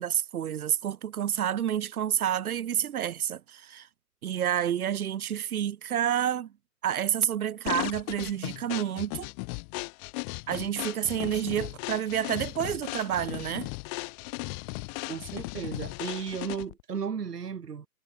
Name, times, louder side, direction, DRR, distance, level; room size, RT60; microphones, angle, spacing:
voice 1, 0.0-3.9 4.2-6.5 6.8-9.3 10.5-13.7, right 10 dB, 70° right, 0.9 m, -29 dB
sound 1, 7.7-16.8, left 40 dB or more, 25° left, 2.0 m, -36 dB
voice 2, 15.1-17.9, right 6 dB, 85° right, 1.5 m, -35 dB
hypercardioid pair, 135°, 46 cm